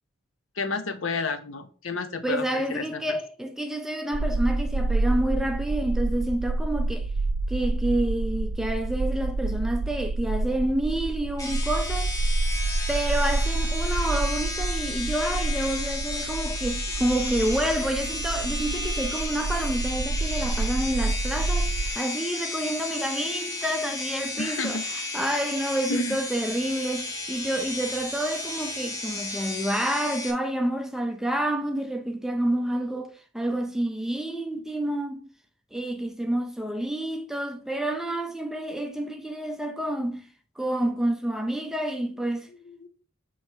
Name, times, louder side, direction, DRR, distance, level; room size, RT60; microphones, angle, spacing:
voice 1, 0.6-3.2 24.4-24.8 25.9-26.2 42.6-42.9, left 4 dB, 70° left, 0.8 m, -31 dB
voice 2, 2.2-7.1 7.5-12.2 12.9-24.8 25.1-35.3 35.7-40.3 40.6-42.5, right 1 dB, ahead, 0.4 m, -28 dB
sound 1, 4.1-21.9, right 2 dB, 65° right, 0.4 m, -28 dB
sound 2, 11.4-30.3, left 2 dB, 15° left, 1.0 m, -33 dB
7.1 x 3.2 x 4.4 m
head